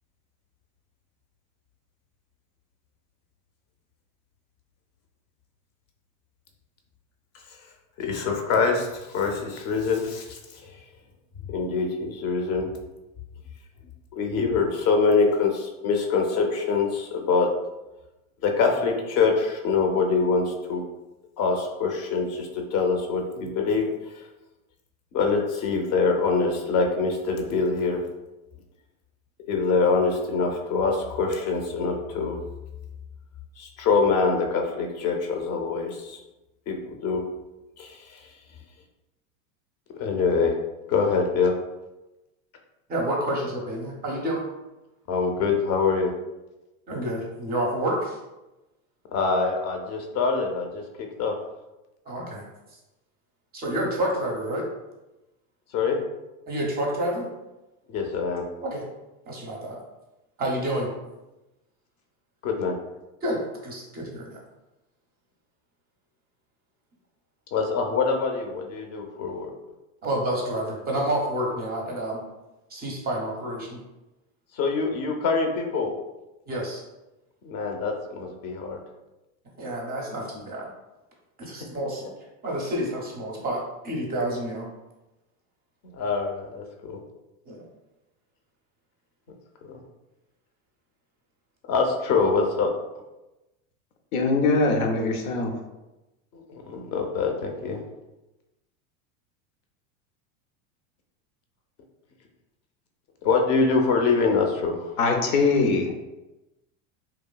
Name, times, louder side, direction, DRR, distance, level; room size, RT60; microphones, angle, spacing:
voice 1, 8.0-10.8 11.4-12.7 14.1-17.5 18.4-20.8 21.4-24.3 25.1-28.0 29.5-32.4 33.6-36.2 36.7-37.2 37.8-38.3 40.0-40.5 40.9-41.5 45.1-46.1 49.1-51.4 55.7-56.0 57.9-58.5 62.4-62.8 67.5-69.5 74.5-75.9 77.4-78.8 85.8-87.0 89.6-89.8 91.7-92.7 96.3-97.8 103.2-104.9, left 4 dB, 40° left, 3 dB, 0.5 m, -24 dB
voice 2, 42.9-44.4 46.9-48.2 52.1-52.5 53.5-54.6 56.5-57.3 58.6-58.8 59.3-59.8 60.4-60.9 63.2-64.4 70.0-72.2 72.7-73.8 76.5-76.8 79.6-80.7 81.4-82.1 82.4-84.7 87.5-87.6, right 1 dB, 25° right, -1 dB, 0.5 m, -29 dB
voice 3, 94.1-95.5 105.0-105.9, left 3 dB, 90° left, 2 dB, 0.6 m, -22 dB
2.9 x 2.3 x 2.2 m, 1.0 s
supercardioid pair, 115°, 41 cm